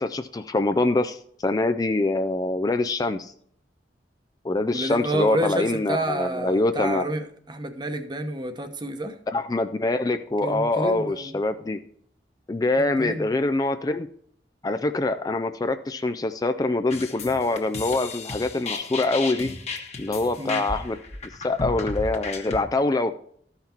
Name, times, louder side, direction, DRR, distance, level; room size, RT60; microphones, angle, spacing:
voice 1, 0.0-3.3 4.4-7.0 9.3-11.8 12.5-14.1 14.6-19.5 20.0-21.0 21.4-23.1, left 2 dB, 20° left, 0.4 m, -24 dB
voice 2, 4.7-9.2 10.4-11.4 12.8-13.3 20.4-20.6, right 1 dB, 25° right, 1.0 m, -29 dB
sound 1, 16.9-22.6, left 3 dB, 40° left, 1.3 m, -34 dB
13.5 x 5.8 x 4.3 m
head